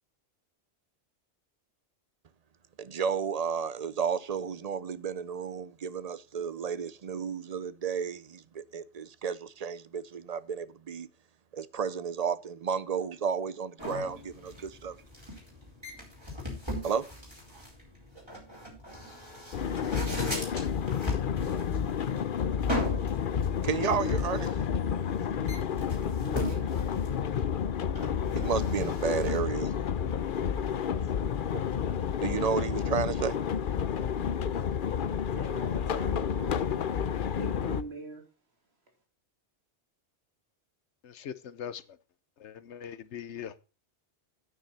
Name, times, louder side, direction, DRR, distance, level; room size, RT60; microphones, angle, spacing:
voice 1, 2.8-11.1 11.5-15.0 16.8-17.1 23.6-24.6 28.3-29.7 31.5-31.6 32.2-33.4, right 6 dB, 45° right, 0.6 m, -32 dB
sound 1, 13.8-29.4, equal, 25° right, 4.9 m, -40 dB
sound 2, 19.5-37.8, left 7 dB, 55° left, 0.8 m, -30 dB
voice 2, 26.2-26.7 35.3-36.8 37.4-38.2, right 2 dB, 65° right, 2.8 m, -42 dB
voice 3, 41.0-41.8 42.4-43.5, left 8 dB, 90° left, 1.1 m, -41 dB
9.6 x 9.3 x 4.1 m
omnidirectional pair, 1.1 m